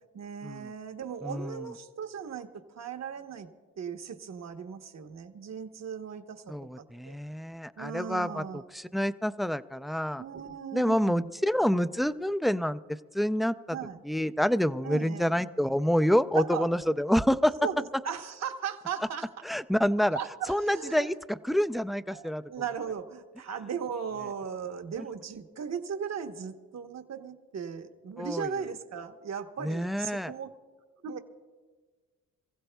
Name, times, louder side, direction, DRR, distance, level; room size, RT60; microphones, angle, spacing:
voice 1, 0.1-3.5 3.8-7.2 7.8-8.6 10.2-11.3 13.7-14.0 14.8-15.4 16.3-16.7 17.6-19.3 20.1-21.1 22.1-30.5 31.0-31.2, right 7 dB, 55° right, 6 dB, 1.1 m, -37 dB
voice 2, 1.2-1.7 6.5-10.2 10.7-13.8 14.0-17.5 19.4-20.2 20.5-22.4 25.0-25.1 28.2-28.5 29.6-30.3, equal, ahead, 13 dB, 0.4 m, -28 dB
27.0 x 15.5 x 2.3 m, 1.4 s
cardioid pair, 75°, 31 cm